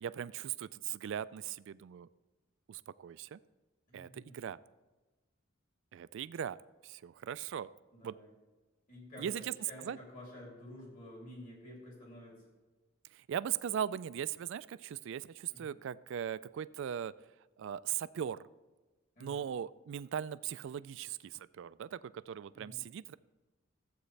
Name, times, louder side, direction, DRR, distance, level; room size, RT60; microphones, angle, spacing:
voice 1, 0.0-2.1 2.7-3.4 3.9-4.6 5.9-6.6 6.8-7.7 8.0-8.2 9.2-9.5 9.8-10.0 13.1-17.1 17.6-18.4 19.2-23.1, right 9 dB, 65° right, 18 dB, 0.3 m, -39 dB
voice 2, 3.9-4.4 7.9-8.3 8.9-12.4 15.5-15.7 19.2-19.5 22.5-22.8, left 1 dB, 40° left, -3 dB, 3.0 m, -51 dB
14.5 x 8.0 x 3.3 m, 1.2 s
head